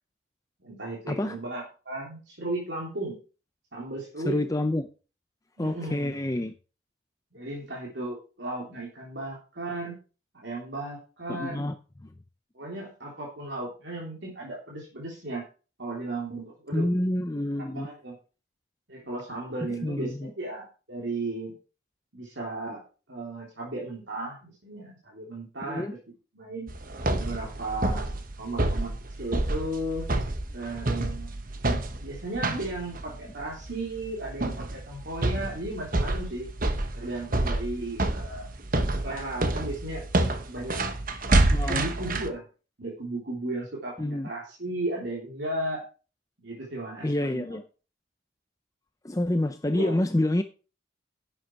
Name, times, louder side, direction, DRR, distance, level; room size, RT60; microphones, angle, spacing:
voice 1, 0.6-3.2 3.7-4.4 5.6-6.2 7.3-9.9 10.4-11.6 12.5-15.4 15.8-16.9 17.7-18.1 18.9-21.5 22.1-22.8 23.1-25.9 26.3-26.7 27.1-30.1 30.5-31.4 32.0-36.5 36.9-38.5 39.0-40.0 40.5-40.8 41.7-42.4 42.8-45.8 46.4-47.6 49.7-50.0, right 2 dB, 65° right, -3 dB, 3.4 m, -35 dB
voice 2, 4.2-4.9 5.6-6.5 11.3-11.7 16.7-17.9 19.8-20.3 25.7-25.9 41.5-41.9 44.0-44.3 47.0-47.6 49.0-50.4, left 1 dB, 15° left, 8 dB, 0.6 m, -27 dB
sound 1, 26.7-42.3, right 2 dB, 45° right, 1.2 m, -28 dB
11.5 x 7.9 x 4.6 m, 0.35 s
head